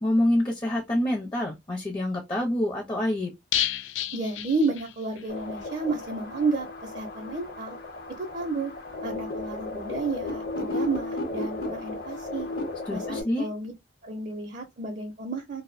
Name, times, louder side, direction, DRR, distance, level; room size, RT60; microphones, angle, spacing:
voice 1, 0.0-3.3 12.9-13.5, left 1 dB, 25° left, 0.5 m, -26 dB
sound 1, 3.5-5.3 5.6-5.7 6.0-6.1, left 11 dB, 80° left, 0.3 m, -31 dB
voice 2, 4.1-7.8 8.2-8.7 9.0-12.5 12.9-13.7 14.0-15.6, right 3 dB, 45° right, 0.5 m, -31 dB
sound 2, 5.3-13.2, left 2 dB, 55° left, 0.8 m, -34 dB
2.5 x 2.0 x 2.4 m
head